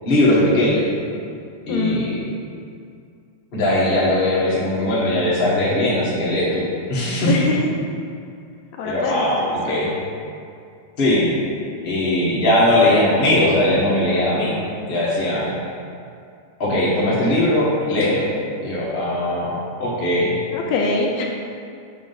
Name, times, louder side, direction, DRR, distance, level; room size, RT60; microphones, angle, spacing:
voice 1, 0.0-0.8 1.7-2.2 3.5-7.3 8.8-9.9 11.0-11.3 11.8-14.6 14.9-15.6 16.6-18.3 18.6-20.4, left 1 dB, 50° left, -7 dB, 0.7 m, -19 dB
voice 2, 1.7-2.1 7.3-7.7 8.8-9.8 20.5-21.2, left 3 dB, 75° left, 0 dB, 1.7 m, -23 dB
7.3 x 2.9 x 5.4 m, 2.4 s
omnidirectional pair, 3.3 m